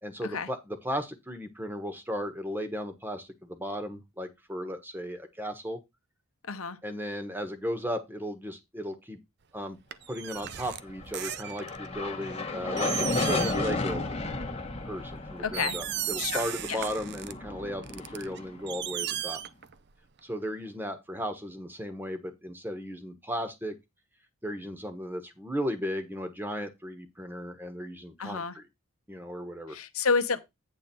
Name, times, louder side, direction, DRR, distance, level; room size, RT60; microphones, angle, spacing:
voice 1, 0.0-5.8 6.8-9.2 9.5-9.8 10.1-14.1 14.8-19.4 20.2-23.7 24.4-28.6 29.1-29.8, equal, 10° right, 1.2 m, -35 dB
sound 1, 9.9-11.9 12.4-12.5 12.8-13.8 14.1-14.4 15.0-15.1 15.5-17.3 17.8-19.9 20.2-20.3, right 11 dB, 50° right, 0.5 m, -36 dB
sound 2, 10.9-19.3, left 3 dB, 30° left, 1.2 m, -34 dB
voice 2, 15.4-15.8 16.2-16.4 16.7-16.8 28.2-28.5 29.7-30.4, left 5 dB, 80° left, 0.9 m, -29 dB
8.9 x 3.5 x 6.9 m
head